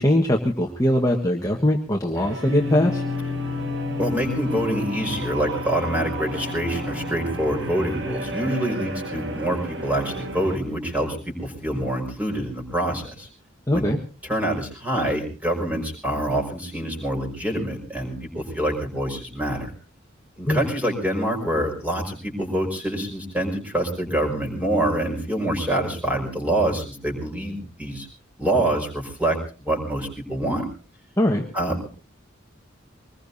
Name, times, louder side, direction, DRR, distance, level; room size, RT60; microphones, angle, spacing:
voice 1, 0.0-3.0 13.7-14.0 20.4-20.6 31.2-31.5, left 1 dB, 15° left, 1 dB, 1.4 m, -21 dB
sound 1, 2.1-10.6, right 2 dB, 60° right, 1.8 m, -34 dB
sound 2, 2.4-12.6, left 4 dB, 90° right, 7.1 m, -34 dB
voice 2, 4.0-13.3 13.7-13.9 14.2-19.7 20.4-28.1 28.4-30.7 31.5-31.9, right 1 dB, 10° right, 1 dB, 5.1 m, -26 dB
23.5 x 20.5 x 2.7 m, 0.34 s
head